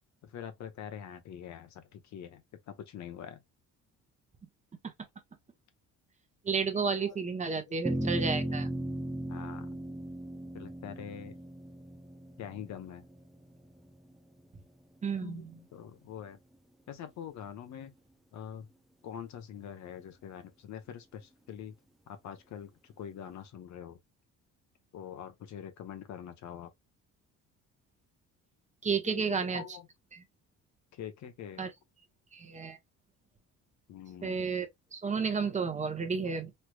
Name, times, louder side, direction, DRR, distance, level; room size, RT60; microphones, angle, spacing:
voice 1, 0.2-3.4 6.7-7.2 7.7-8.6 9.3-9.8 10.5-11.3 12.4-13.0 15.2-16.4 16.9-17.9 18.3-18.7 19.0-21.8 22.1-24.0 24.9-26.7 29.0-29.9 30.9-31.7 33.9-34.7, left 9 dB, 60° left, 0.8 m, -45 dB
voice 2, 6.4-8.7 15.0-15.5 28.8-29.6 30.1-30.2 31.6-31.7 32.3-32.8 34.2-36.5, right 5 dB, 20° right, 0.8 m, -32 dB
sound 1, 7.8-14.4, right 1 dB, ahead, 0.3 m, -37 dB
3.2 x 3.0 x 2.2 m
cardioid pair, 130°, 33 cm